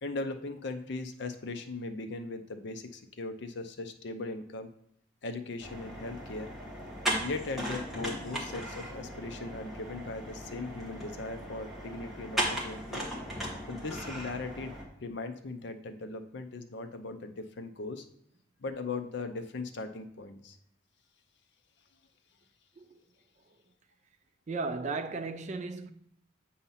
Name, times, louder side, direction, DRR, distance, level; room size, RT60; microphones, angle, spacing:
voice 1, 0.0-4.7 5.2-6.5 7.2-13.0 13.7-18.1 18.6-20.6, left 3 dB, 55° left, 0.5 m, -39 dB
sound 1, 5.6-14.8, equal, ahead, 1.2 m, -37 dB
voice 2, 24.5-25.9, right 3 dB, 35° right, 0.4 m, -35 dB
8.1 x 2.8 x 5.6 m
head